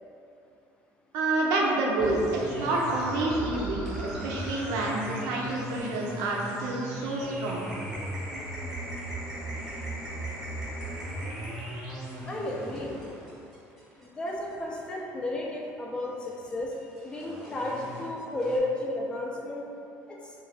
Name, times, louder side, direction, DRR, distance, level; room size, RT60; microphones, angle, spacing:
voice 1, 1.1-7.7, right 2 dB, 85° right, -2 dB, 0.5 m, -28 dB
sound 1, 2.0-15.0 16.0-18.6, right 1 dB, 5° right, 0.8 m, -38 dB
voice 2, 12.3-13.0 14.0-16.7 17.0-19.6 20.1-20.2, left 1 dB, 15° left, -2 dB, 0.4 m, -33 dB
2.5 x 2.2 x 3.2 m, 2.6 s
cardioid pair, 145°, 6 cm